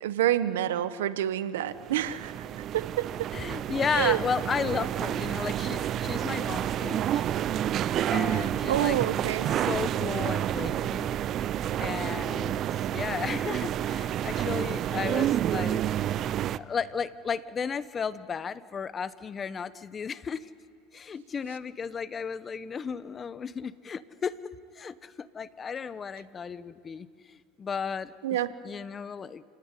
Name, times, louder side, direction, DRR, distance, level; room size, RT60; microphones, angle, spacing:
voice 1, 0.0-2.3 2.7-3.3 3.9-4.2 8.3-9.5 28.2-28.5, right 12 dB, 90° right, 14 dB, 1.1 m, -28 dB
sound 1, 1.8-16.6, right 11 dB, 45° right, 0.6 m, -29 dB
voice 2, 3.3-7.2 8.1-9.0 9.5-11.1 11.8-15.8 16.3-20.5 20.9-24.4 24.7-28.4 28.6-29.4, left 6 dB, 25° left, 15 dB, 1.0 m, -34 dB
28.5 x 17.5 x 9.9 m, 2.3 s
supercardioid pair, 110°, 0 cm